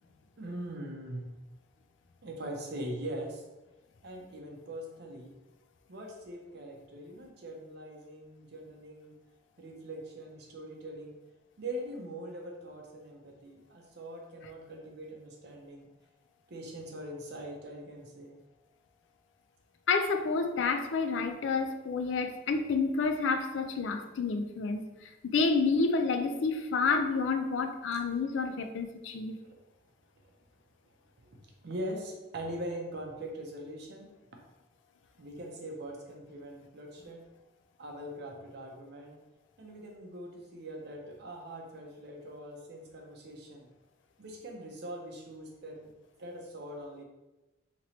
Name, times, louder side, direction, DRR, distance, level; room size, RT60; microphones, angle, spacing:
voice 1, 0.4-1.3 2.2-3.4 4.0-5.3 5.9-9.2 9.6-11.2 11.6-15.9 16.5-18.4 29.4-29.6 30.2-30.3 31.2-31.4 31.6-34.1 35.2-37.3 37.8-39.2 39.6-43.7 44.2-45.9 46.2-47.0, right 1 dB, 60° right, 1 dB, 0.6 m, -42 dB
voice 2, 19.9-24.8 25.3-29.4, left 4 dB, 70° left, 6 dB, 0.4 m, -29 dB
3.0 x 2.9 x 2.8 m, 1.1 s
head